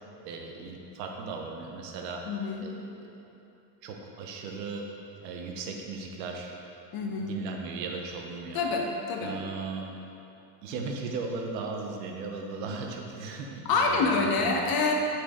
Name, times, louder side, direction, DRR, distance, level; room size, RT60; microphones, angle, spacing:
voice 1, 0.2-2.2 2.6-3.1 3.8-4.9 5.2-6.5 7.2-8.6 9.2-9.9 10.6-14.6, right 4 dB, 80° right, 1 dB, 1.0 m, -37 dB
voice 2, 2.3-2.7 6.9-7.4 8.5-9.4 13.6-14.9, left 4 dB, 45° left, 1 dB, 1.1 m, -27 dB
8.3 x 4.4 x 3.7 m, 2.9 s
supercardioid pair, 100°, 49 cm